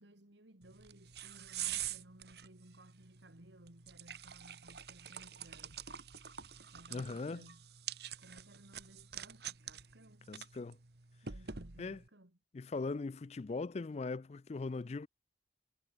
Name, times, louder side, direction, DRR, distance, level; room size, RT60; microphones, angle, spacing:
voice 1, 0.0-5.9 6.7-7.6 8.2-10.3 11.2-12.4, right 1 dB, 75° right, 2.8 m, -59 dB
sound 1, 0.6-12.1, right 10 dB, 60° right, 1.6 m, -46 dB
voice 2, 6.9-7.4 10.3-10.8 11.8-12.0 12.5-15.1, left 3 dB, 35° left, 0.4 m, -40 dB
head